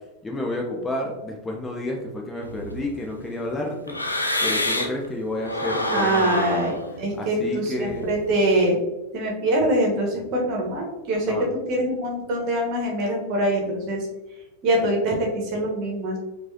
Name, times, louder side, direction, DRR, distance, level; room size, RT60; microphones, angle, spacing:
voice 1, 0.2-4.0 4.4-6.7 7.1-8.1 11.2-11.5, left 1 dB, 15° left, 0 dB, 0.5 m, -30 dB
sound 1, 2.4-5.1 5.4-8.5, left 1 dB, 85° left, 0.4 m, -28 dB
voice 2, 5.9-8.8 9.1-11.3 11.7-14.1 14.6-16.2, right 1 dB, 40° right, -1 dB, 1.2 m, -24 dB
4.6 x 2.6 x 2.8 m, 1.0 s
figure-of-eight pair, 90°, 0 cm